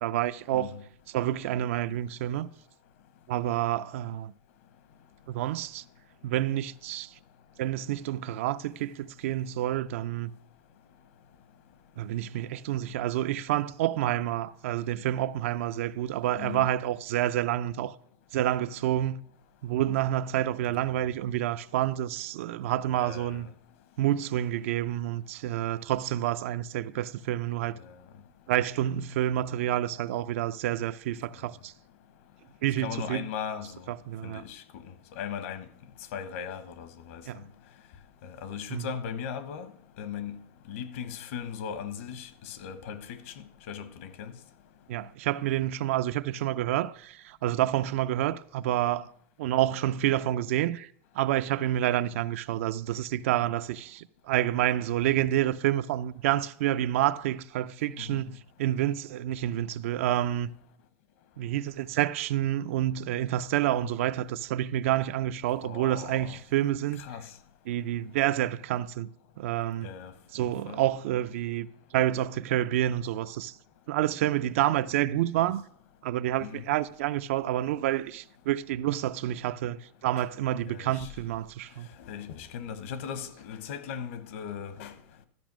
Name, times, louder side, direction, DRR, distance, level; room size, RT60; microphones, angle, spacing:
voice 1, 0.0-0.7 1.1-2.5 3.3-4.3 5.3-5.8 6.2-7.1 7.6-10.3 12.0-17.9 18.3-19.2 19.6-23.5 24.0-27.8 28.5-31.7 32.6-33.3 33.9-34.4 37.3-37.4 38.7-38.9 44.9-49.1 49.4-50.9 51.2-60.5 61.4-67.0 67.7-69.1 69.4-69.9 70.3-71.7 71.9-73.5 73.9-75.6 76.0-81.9, right 13 dB, 80° right, 0.5 m, -28 dB
voice 2, 16.4-16.7 22.9-23.4 27.8-28.0 32.8-33.9 34.2-34.8 35.2-35.7 36.1-37.2 38.2-39.7 40.0-40.4 40.7-43.3 43.7-44.3 58.0-58.2 63.8-63.9 65.6-66.4 67.0-67.2 69.8-70.1 70.4-70.8 75.4-75.5 76.4-76.6 80.7-81.1 82.0-84.9, left 7 dB, 75° left, 1.1 m, -38 dB
12.5 x 5.1 x 6.1 m
supercardioid pair, 150°, 7 cm